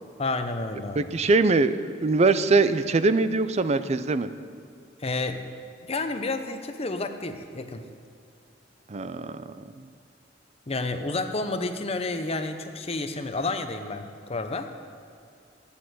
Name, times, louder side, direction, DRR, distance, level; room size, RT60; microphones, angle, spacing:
voice 1, 0.2-1.1 5.0-5.4 5.9-7.9 10.7-14.7, left 3 dB, 35° left, 7 dB, 0.8 m, -30 dB
voice 2, 1.0-4.3 8.9-9.9, right 3 dB, 35° right, 12 dB, 0.5 m, -23 dB
11.5 x 8.6 x 7.7 m, 2.4 s
head